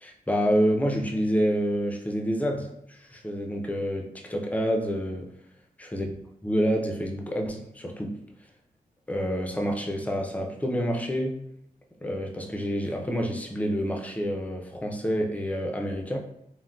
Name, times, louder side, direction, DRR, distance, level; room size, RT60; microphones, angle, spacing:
voice 1, 0.0-5.3 5.9-6.1 6.4-8.2 9.1-11.4 12.0-16.2, equal, 10° left, 1 dB, 0.4 m, -28 dB
3.7 x 2.1 x 2.3 m, 0.75 s
wide cardioid pair, 95°, 15 cm